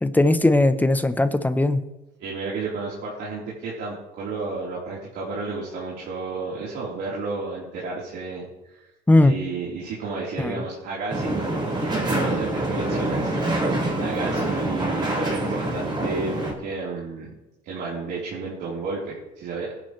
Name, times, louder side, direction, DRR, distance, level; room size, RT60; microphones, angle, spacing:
voice 1, 0.0-1.8 9.1-9.3 10.4-10.6, left 2 dB, 10° left, 11 dB, 0.9 m, -18 dB
voice 2, 2.2-8.4 8.7-8.8 9.2-11.5 11.9-17.3 17.6-19.7, right 4 dB, 75° right, -7 dB, 4.0 m, -32 dB
sound 1, 11.1-16.5, right 1 dB, 25° right, 5.2 m, -25 dB
20.5 x 11.0 x 3.3 m, 1.0 s
cardioid pair, 110°, 17 cm